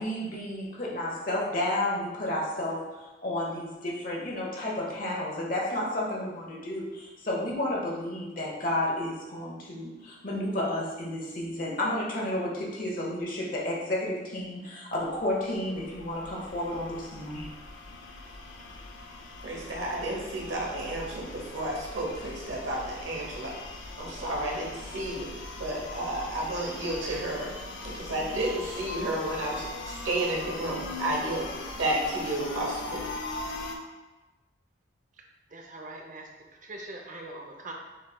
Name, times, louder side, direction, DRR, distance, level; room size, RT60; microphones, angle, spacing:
voice 1, 0.0-2.8 3.2-17.5, left 1 dB, 50° left, -3 dB, 1.1 m, -31 dB
sound 1, 15.0-33.8, left 3 dB, 80° left, 0.5 m, -40 dB
voice 2, 19.4-23.5 24.0-25.3 25.6-27.5 27.9-31.5 31.7-33.0, right 1 dB, 90° right, -2 dB, 1.0 m, -31 dB
voice 3, 35.5-37.7, right 2 dB, 45° right, 1 dB, 0.6 m, -42 dB
6.3 x 3.2 x 2.3 m, 1.1 s
head